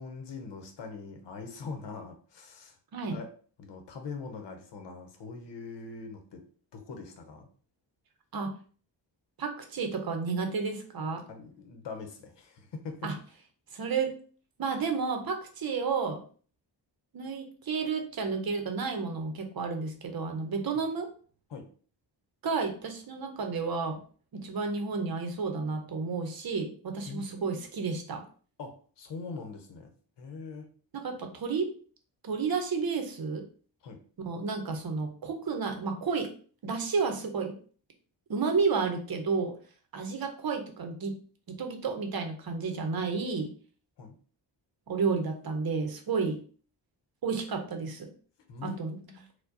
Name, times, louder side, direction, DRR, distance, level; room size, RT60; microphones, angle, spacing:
voice 1, 0.0-2.8 3.1-3.3 3.6-6.4 6.7-7.5 11.3-13.1 20.7-20.8 21.5-21.7 27.1-27.6 28.6-29.9 30.2-30.7 33.8-34.0 44.0-44.2 48.5-48.8 49.1-49.2, left 4 dB, 70° left, 5 dB, 0.8 m, -42 dB
voice 2, 9.4-11.2 13.0-13.2 13.7-14.1 14.6-16.2 17.1-21.1 22.4-24.0 24.3-28.2 30.9-31.7 32.2-33.5 34.2-36.3 36.6-37.6 38.3-39.5 39.9-41.2 41.5-43.5 44.9-46.4 47.2-48.1 48.6-49.0, right 4 dB, 55° right, 5 dB, 0.7 m, -31 dB
4.6 x 2.2 x 2.6 m, 0.42 s
wide cardioid pair, 145°, 44 cm